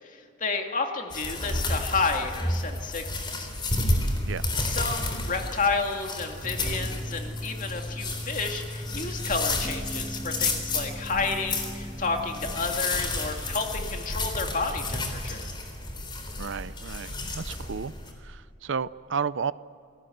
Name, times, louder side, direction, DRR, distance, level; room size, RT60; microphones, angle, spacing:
voice 1, 0.0-3.1 3.3-3.5 4.6-15.4, left 4 dB, 40° left, 3 dB, 2.3 m, -31 dB
sound 1, 1.1-18.1, left 2 dB, 25° left, 3.7 m, -31 dB
sound 2, 6.4-15.2, equal, ahead, 1.4 m, -39 dB
voice 2, 16.4-17.9 18.2-19.5, right 6 dB, 65° right, 17 dB, 0.5 m, -32 dB
29.0 x 18.0 x 7.9 m, 2.5 s
head